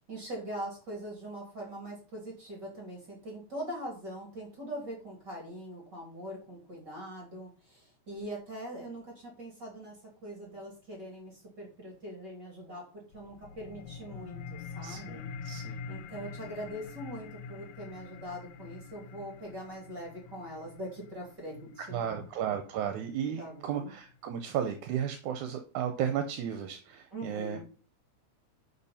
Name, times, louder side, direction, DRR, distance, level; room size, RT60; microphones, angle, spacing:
voice 1, 0.1-10.0 10.2-15.3 15.9-22.2 22.7-22.8 23.4-23.9 27.1-27.6, right 1 dB, 35° right, -3 dB, 3.4 m, -42 dB
sound 1, 13.1-24.1, left 5 dB, 70° left, 2.0 m, -46 dB
voice 2, 14.8-15.8 21.9-27.6, right 9 dB, 80° right, 6 dB, 2.3 m, -34 dB
11.0 x 4.8 x 4.3 m, 0.39 s
omnidirectional pair, 3.5 m